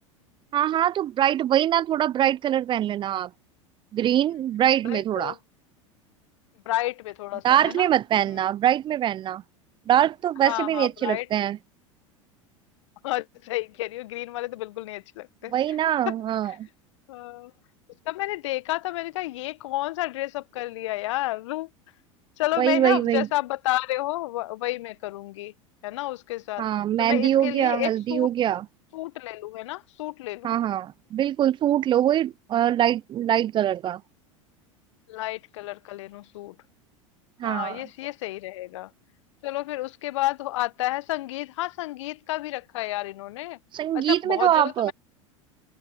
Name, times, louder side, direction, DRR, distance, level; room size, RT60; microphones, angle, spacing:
voice 1, 0.5-3.3 3.9-5.3 7.4-9.4 9.9-11.6 15.5-16.5 22.6-23.3 26.6-28.7 30.4-34.0 37.4-37.8 43.7-44.9, right 11 dB, 30° right, 0.5 m, -23 dB
voice 2, 4.8-5.4 6.6-7.9 10.4-11.3 13.0-15.5 16.1-16.2 16.5-16.6 17.1-17.5 18.0-21.7 22.4-25.5 25.8-26.7 27.0-28.3 28.9-30.5 35.1-36.5 37.4-38.9 39.4-43.6 43.9-44.9, left 17 dB, 65° left, 1.1 m, -31 dB
figure-of-eight pair, 80°, 17 cm